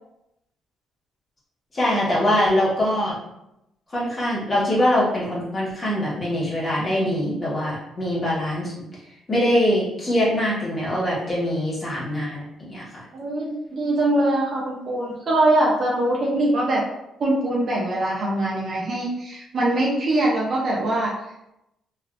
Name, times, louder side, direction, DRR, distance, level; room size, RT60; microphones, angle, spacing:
voice 1, 1.7-3.2 3.9-8.7 9.3-12.9, left 1 dB, 35° left, -8 dB, 1.1 m, -23 dB
voice 2, 13.1-16.8 17.2-21.1, right 1 dB, 55° right, -4 dB, 0.6 m, -22 dB
3.4 x 2.3 x 2.3 m, 0.86 s
cardioid pair, 90°, 0 cm